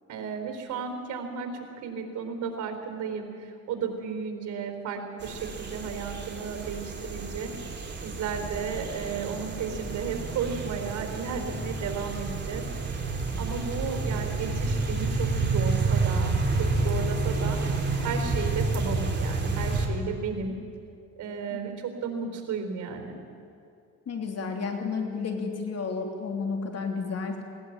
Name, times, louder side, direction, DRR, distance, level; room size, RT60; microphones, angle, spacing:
voice 1, 0.1-7.5 8.0-12.6 13.4-17.6 18.0-20.5 21.2-23.2, right 6 dB, 75° right, 5 dB, 3.9 m, -34 dB
sound 1, 5.2-19.9, right 3 dB, 35° right, 3.3 m, -29 dB
voice 2, 24.1-27.4, left 4 dB, 55° left, 3 dB, 3.2 m, -31 dB
20.0 x 18.5 x 8.9 m, 2.4 s
cardioid pair, 90°, 30 cm